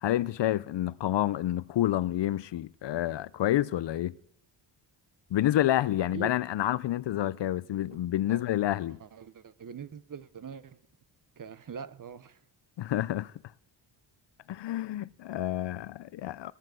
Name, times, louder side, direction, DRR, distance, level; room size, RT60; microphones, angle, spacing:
voice 1, 0.0-4.2 5.3-9.0 12.8-13.3 14.5-16.5, left 13 dB, 65° left, 0.5 m, -28 dB
voice 2, 6.0-6.4 7.9-8.0 8.3-10.8 11.4-12.4, right 6 dB, 40° right, 0.8 m, -43 dB
14.0 x 13.0 x 7.6 m
cardioid pair, 90°, 47 cm